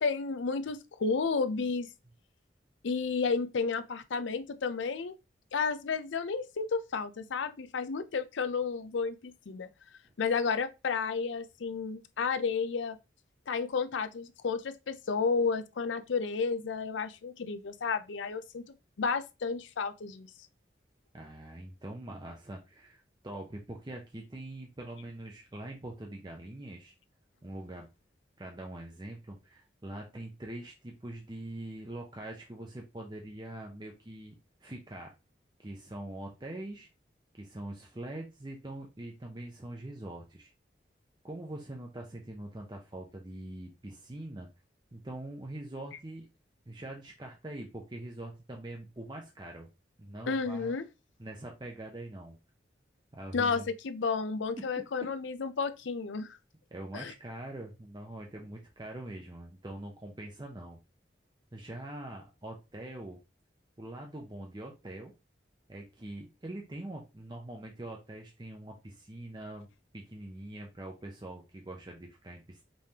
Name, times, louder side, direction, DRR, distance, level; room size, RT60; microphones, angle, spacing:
voice 1, 0.0-1.9 2.8-5.2 5.5-9.7 10.2-13.0 13.5-18.6 19.0-20.3 50.3-50.8 53.3-56.4 56.9-57.1, left 5 dB, 90° left, 0.5 m, -32 dB
voice 2, 21.1-26.9 27.4-27.9 28.4-34.4 34.6-35.1 35.6-36.9 37.3-40.5 41.2-44.5 44.9-46.3 46.7-49.7 50.0-50.8 51.2-52.4 53.1-53.7 54.6-54.7 56.7-60.8 61.5-63.2 63.8-65.1 65.7-69.7 69.9-72.6, right 1 dB, 25° right, 0.6 m, -43 dB
5.3 x 3.3 x 2.8 m
head